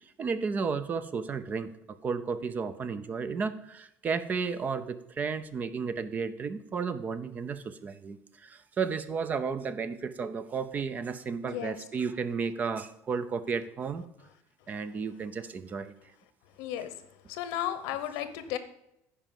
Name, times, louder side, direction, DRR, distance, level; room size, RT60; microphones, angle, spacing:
voice 1, 0.2-14.0 14.7-15.9, right 5 dB, 25° right, 13 dB, 0.5 m, -33 dB
voice 2, 16.6-16.9 17.3-18.6, left 11 dB, 85° left, 12 dB, 1.0 m, -34 dB
10.0 x 5.0 x 7.6 m, 0.81 s
cardioid pair, 155°, 6 cm